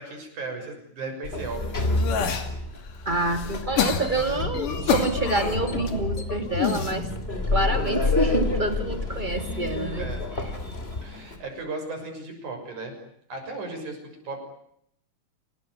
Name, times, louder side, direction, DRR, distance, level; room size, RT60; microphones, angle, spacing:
voice 1, 0.0-1.9 10.0-10.2 11.0-12.9 13.3-14.0 14.2-14.4, right 3 dB, 70° right, 4 dB, 8.0 m, -36 dB
Sliding door, 1.2-11.4, left 2 dB, 20° left, 2.8 m, -29 dB
sound 1, 1.4-2.5 3.0-5.9 6.5-6.9 7.7-8.1, left 7 dB, 80° left, 4.1 m, -28 dB
voice 2, 3.1-7.1 7.5-10.1, right 2 dB, 15° right, 7 dB, 2.3 m, -27 dB
sound 2, 3.8-7.1 7.5-8.0 8.3-8.6 8.9-9.2 9.8-10.1, left 4 dB, 50° left, 3.2 m, -34 dB
28.5 x 19.0 x 9.8 m, 0.72 s
omnidirectional pair, 3.6 m